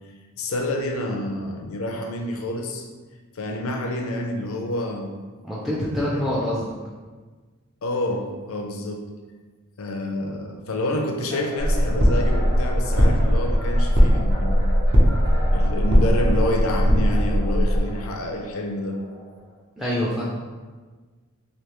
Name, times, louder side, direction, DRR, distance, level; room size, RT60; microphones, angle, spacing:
voice 1, 0.4-2.9 3.3-5.2 6.0-6.2 7.8-9.1 9.8-14.7 15.5-19.0, left 1 dB, 70° left, 3 dB, 0.5 m, -28 dB
voice 2, 5.4-6.7 19.8-20.2, left 1 dB, ahead, -6 dB, 0.3 m, -25 dB
sound 1, 11.3-19.6, equal, 75° right, 1.4 m, -38 dB
sound 2, 11.6-17.8, equal, 55° right, 0.7 m, -19 dB
3.3 x 2.7 x 3.0 m, 1.4 s
head